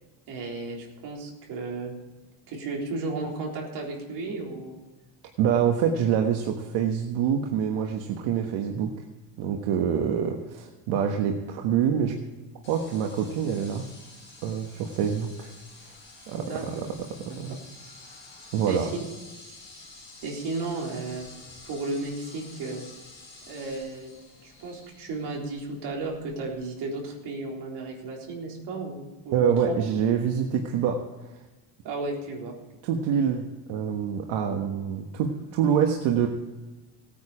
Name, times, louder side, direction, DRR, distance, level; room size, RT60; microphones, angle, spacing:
voice 1, 0.3-1.9 2.5-4.7 16.3-16.7 18.7-18.9 20.2-21.3 21.6-22.8 23.5-24.1 24.4-29.8 31.8-32.6, right 3 dB, 60° right, -1 dB, 3.9 m, -34 dB
voice 2, 5.4-8.9 9.4-12.1 12.6-13.8 14.4-15.5 16.3-16.4 17.3-17.6 18.5-18.8 29.3-31.0 32.8-33.4 33.7-36.3, right 8 dB, 80° right, 2 dB, 1.5 m, -25 dB
sound 1, 12.6-26.5, left 2 dB, 25° left, 4.6 m, -49 dB
17.5 x 9.4 x 5.0 m, 1.1 s
cardioid pair, 165°, 47 cm